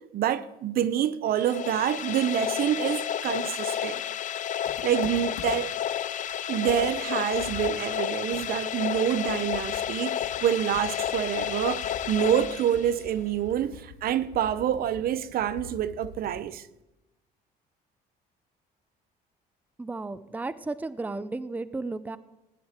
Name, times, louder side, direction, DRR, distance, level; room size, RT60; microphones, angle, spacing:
voice 1, 0.1-4.0 4.8-5.8 6.5-16.7, right 10 dB, 60° right, 0.7 m, -27 dB
sound 1, 1.3-13.2, left 10 dB, 50° left, 0.6 m, -31 dB
Computer keyboard, 4.6-5.8 6.3-6.4 6.7-16.5, left 6 dB, 85° left, 2.2 m, -46 dB
voice 2, 19.8-22.2, right 3 dB, 10° right, 0.5 m, -34 dB
16.0 x 10.5 x 4.4 m
cardioid pair, 110°, 17 cm